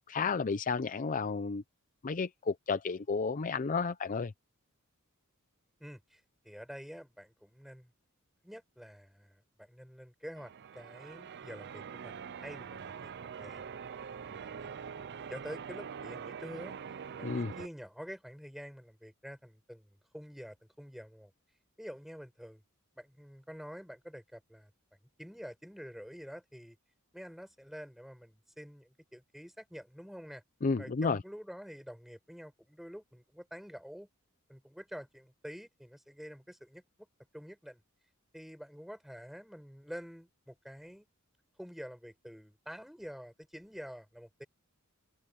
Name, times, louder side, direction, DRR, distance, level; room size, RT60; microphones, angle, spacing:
voice 1, 0.1-1.6 2.0-4.3 17.2-17.5 30.6-31.2, left 4 dB, 40° left, 0.5 m, -32 dB
voice 2, 5.8-7.9 8.4-13.7 14.3-16.7 17.1-21.3 21.8-22.6 22.9-24.7 25.2-26.8 27.1-30.4 30.8-34.1 34.5-36.8 37.3-37.8 38.3-41.1 41.6-44.4, equal, ahead, 7.8 m, -48 dB
Church bell, 10.4-17.7, right 7 dB, 50° right, 0.5 m, -44 dB
open air
head